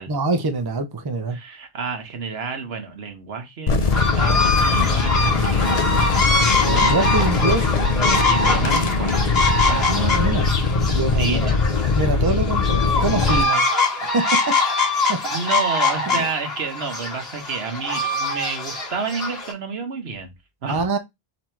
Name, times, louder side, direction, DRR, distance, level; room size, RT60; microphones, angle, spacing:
voice 1, 0.1-1.4 4.7-4.9 6.7-7.7 9.7-10.5 10.9-11.5 11.9-13.6 14.0-14.5 15.1-15.5 16.1-16.3 20.7-21.0, right 3 dB, 30° right, 0.5 m, -25 dB
voice 2, 1.3-5.7 8.3-9.3 9.7-9.9 11.2-11.6 15.3-20.3 20.6-20.8, right 5 dB, 75° right, 1.3 m, -30 dB
sound 1, 3.7-13.4, left 4 dB, 45° left, 0.6 m, -21 dB
sound 2, 3.9-19.5, left 2 dB, 75° left, 1.9 m, -23 dB
4.1 x 2.8 x 4.4 m
omnidirectional pair, 1.1 m